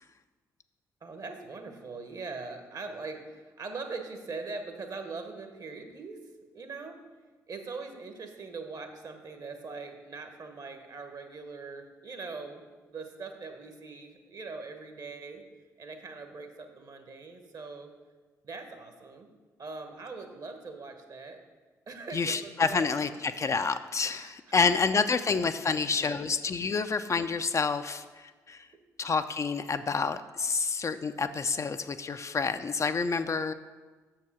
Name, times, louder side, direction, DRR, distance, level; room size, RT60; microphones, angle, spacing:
voice 1, 1.0-6.2 6.5-7.0 7.5-15.4 15.8-17.9 18.4-19.3 19.6-21.4 21.9-23.5 24.1-24.3 24.9-25.0 25.7-26.3 28.5-28.6, right 4 dB, 50° right, 6 dB, 1.1 m, -42 dB
voice 2, 22.1-28.7 29.0-33.5, left 5 dB, 35° left, 10 dB, 0.4 m, -28 dB
6.8 x 4.7 x 6.1 m, 1.3 s
hypercardioid pair, 45°, 8 cm